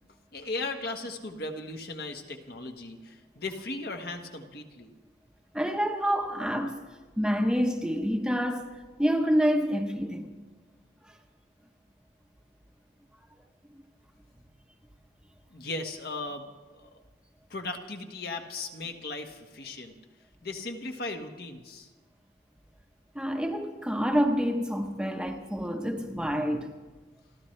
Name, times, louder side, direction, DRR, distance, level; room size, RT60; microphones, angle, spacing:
voice 1, 0.3-4.9 15.5-16.9 17.5-19.9 20.4-21.9, left 2 dB, 55° left, 1.4 m, -37 dB
voice 2, 5.5-6.8 7.2-8.7 9.0-10.4 23.1-26.7, equal, 5° right, 0.9 m, -27 dB
28.5 x 13.0 x 3.3 m
head